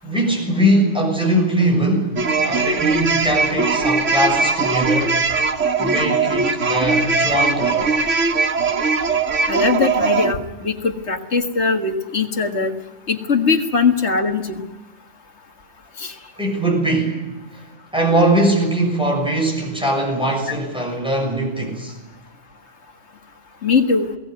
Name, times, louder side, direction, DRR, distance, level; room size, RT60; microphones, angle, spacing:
voice 1, 0.0-5.2 5.8-7.9 16.4-17.6 17.9-22.0, right 1 dB, 5° right, 0 dB, 6.9 m, -21 dB
sound 1, 2.2-10.3, right 4 dB, 80° right, 1.7 m, -20 dB
voice 2, 9.5-12.7 13.1-14.6 16.0-16.1 23.6-24.1, left 4 dB, 65° left, 5 dB, 2.1 m, -20 dB
22.0 x 17.5 x 9.4 m, 1.1 s
omnidirectional pair, 1.2 m